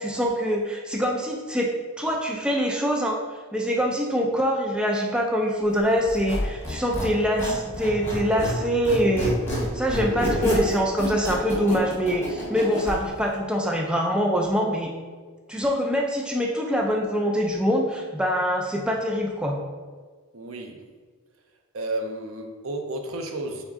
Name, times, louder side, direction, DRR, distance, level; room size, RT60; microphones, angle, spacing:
voice 1, 0.0-3.2 3.5-9.4 9.7-14.9 15.5-19.6, equal, 5° right, 0 dB, 0.3 m, -24 dB
Squeak, 6.1-8.6 8.8-13.0, equal, 10° left, 1.0 m, -28 dB
voice 2, 20.3-20.8 21.7-23.6, right 2 dB, 75° right, 4 dB, 0.6 m, -32 dB
4.1 x 3.6 x 3.5 m, 1.5 s
head